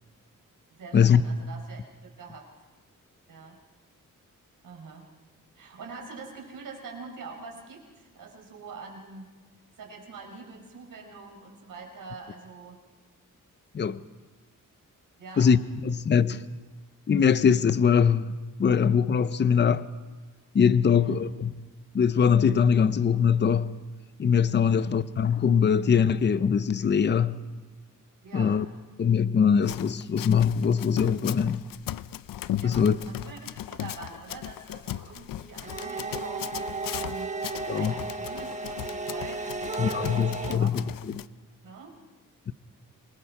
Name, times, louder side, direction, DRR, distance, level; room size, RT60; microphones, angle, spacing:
voice 1, 0.7-2.5 3.3-3.6 4.6-5.1 5.5-9.3 9.8-12.8 15.2-15.6 20.8-21.2 24.6-25.0 28.2-28.6 32.6-33.4 33.7-41.0 41.6-41.9, right 4 dB, 80° right, 4.5 m, -44 dB
voice 2, 15.4-16.4 17.1-18.3 18.6-19.9 20.5-21.5 21.9-23.7 24.2-27.4 28.3-28.7 29.0-31.6 32.6-33.0 37.7-37.9 39.8-40.8 42.5-42.6, left 7 dB, 35° left, 0.6 m, -22 dB
Run, 29.6-41.3, left 12 dB, 90° left, 0.5 m, -37 dB
sound 1, 35.6-40.5, right 3 dB, 20° right, 1.2 m, -34 dB
27.5 x 20.0 x 4.8 m
wide cardioid pair, 145°, 33 cm